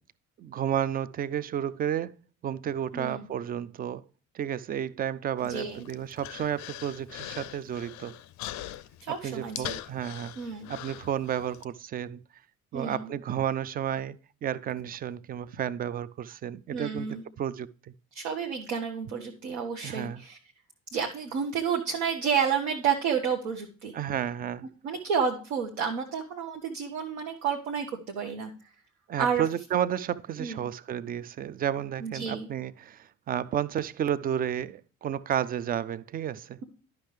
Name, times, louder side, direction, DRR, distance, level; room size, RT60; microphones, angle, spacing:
voice 1, 0.4-2.1 2.4-4.0 4.3-8.2 9.1-10.3 10.7-12.2 12.7-14.2 14.4-17.1 17.4-17.7 19.8-20.2 23.9-24.6 29.1-36.6, right 10 dB, 25° right, 0.3 m, -32 dB
voice 2, 2.9-3.3 5.4-5.8 9.0-9.8 10.4-10.7 12.7-13.1 16.7-17.2 18.1-20.4 20.9-23.9 24.8-28.7 29.2-29.4 30.4-30.6 32.0-32.5, right 6 dB, 70° right, 1.0 m, -30 dB
Human voice, 5.4-11.6, left 14 dB, 45° left, 0.5 m, -42 dB
11.5 x 5.8 x 3.2 m
figure-of-eight pair, 50°, 38 cm